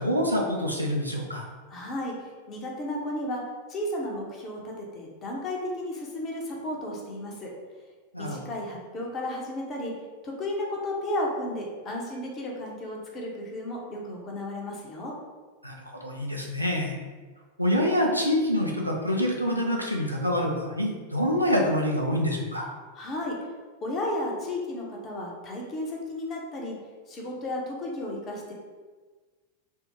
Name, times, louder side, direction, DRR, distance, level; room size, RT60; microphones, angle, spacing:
voice 1, 0.0-1.4 8.1-8.4 15.6-15.8 16.0-17.0 17.6-22.7, equal, 90° right, -1 dB, 0.4 m, -26 dB
voice 2, 1.7-3.4 3.7-7.5 8.2-9.9 10.2-15.1 22.9-23.4 23.8-26.8 27.1-28.5, left 1 dB, 30° left, -1 dB, 0.7 m, -33 dB
3.3 x 2.0 x 2.9 m, 1.4 s
figure-of-eight pair, 90°, 0 cm